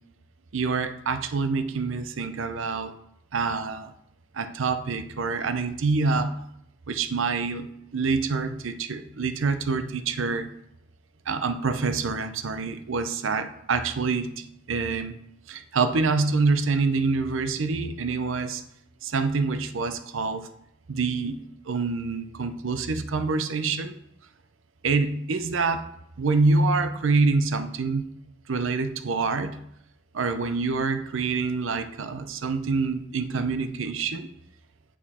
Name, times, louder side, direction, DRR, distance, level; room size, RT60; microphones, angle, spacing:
voice 1, 0.5-2.9 3.3-3.9 4.3-6.4 6.9-10.5 11.3-15.1 15.5-18.6 19.0-20.5 20.9-21.4 21.7-23.9 24.8-25.8 26.2-28.1 28.5-29.6 30.1-34.3, right 4 dB, 85° right, 10 dB, 0.6 m, -26 dB
8.7 x 5.0 x 4.2 m, 0.78 s
head